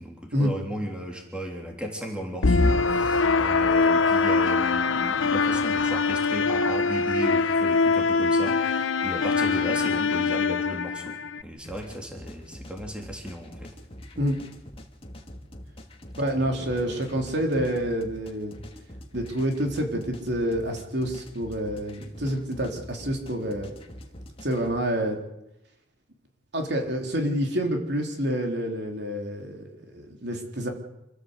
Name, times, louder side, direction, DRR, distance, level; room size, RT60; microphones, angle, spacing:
voice 1, 0.0-13.7 16.4-17.0, equal, 5° right, 1 dB, 3.4 m, -35 dB
sound 1, 2.4-11.4, left 4 dB, 85° left, 0.9 m, -23 dB
sound 2, 11.6-24.7, equal, 30° left, 2.5 m, -45 dB
voice 2, 16.2-18.6 19.1-23.7 24.4-25.2 26.5-30.7, equal, 55° right, 3 dB, 3.6 m, -28 dB
27.0 x 15.5 x 8.1 m, 0.90 s
head